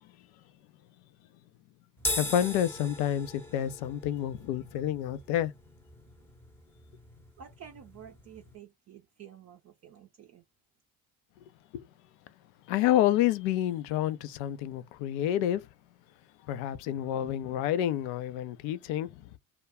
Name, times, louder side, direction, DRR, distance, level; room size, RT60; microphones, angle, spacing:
sound 1, 2.0-8.6, left 1 dB, 5° left, 0.7 m, -40 dB
voice 1, 2.2-5.5 11.7-11.8 12.7-15.6 16.5-19.3, left 11 dB, 65° left, 0.6 m, -29 dB
voice 2, 7.4-10.4, right 9 dB, 40° right, 0.6 m, -50 dB
2.2 x 2.2 x 3.4 m
hypercardioid pair, 60°, 40 cm